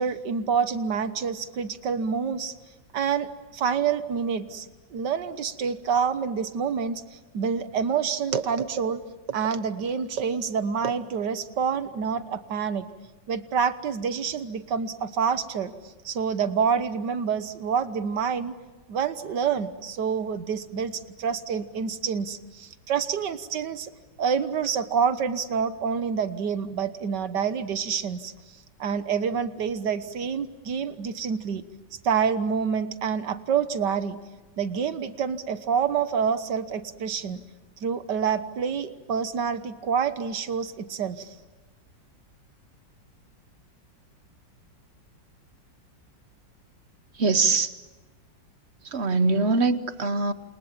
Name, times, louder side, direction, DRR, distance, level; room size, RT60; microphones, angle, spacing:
voice 1, 0.0-2.5 2.9-7.0 7.3-9.0 9.3-12.9 13.3-15.7 16.1-18.5 18.9-23.9 24.2-28.3 28.8-31.6 32.0-34.2 34.6-37.4 37.8-41.3, right 6 dB, 70° right, 12 dB, 1.8 m, -27 dB
voice 2, 47.2-47.7 48.9-50.3, right 3 dB, 45° right, 12 dB, 1.1 m, -23 dB
28.5 x 28.0 x 7.4 m, 1.2 s
omnidirectional pair, 2.0 m